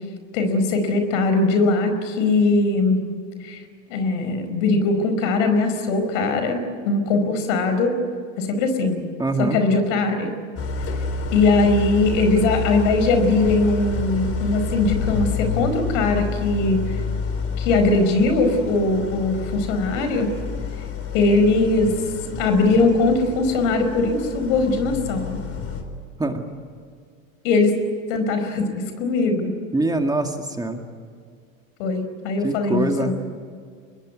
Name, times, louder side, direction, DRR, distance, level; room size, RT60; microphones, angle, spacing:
voice 1, 0.3-3.0 3.4-3.6 3.9-7.9 8.4-9.0 9.4-10.3 11.3-17.0 17.6-20.3 21.1-22.0 22.4-25.4 27.4-27.7 28.1-29.5 31.8-33.1, left 3 dB, 65° left, 8 dB, 5.0 m, -20 dB
voice 2, 9.2-9.6 26.2-26.4 29.7-30.8 32.4-33.1, right 2 dB, 10° right, 4 dB, 2.2 m, -23 dB
Idling, 10.6-25.8, left 4 dB, 35° left, 4.2 m, -29 dB
24.5 x 21.0 x 9.6 m, 2.1 s
hypercardioid pair, 95°, 40 cm